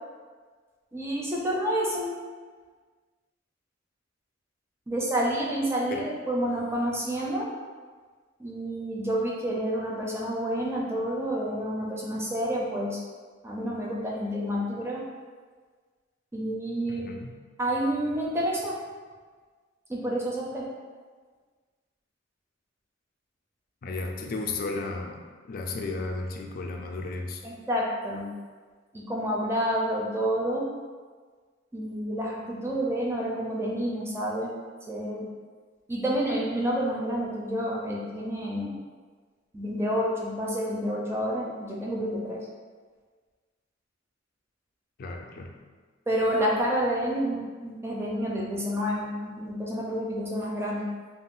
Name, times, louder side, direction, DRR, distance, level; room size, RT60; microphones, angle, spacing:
voice 1, 0.9-2.1 4.9-7.5 8.4-13.0 13.4-15.0 16.3-17.0 17.6-18.8 19.9-20.6 27.4-28.3 28.9-30.7 31.7-34.5 34.9-35.3 35.9-38.7 39.5-42.4 46.1-50.9, equal, 15° right, -3 dB, 0.4 m, -29 dB
voice 2, 16.9-17.4 23.8-27.4 45.0-45.6, left 3 dB, 50° left, 2 dB, 0.3 m, -34 dB
2.4 x 2.1 x 3.6 m, 1.5 s
head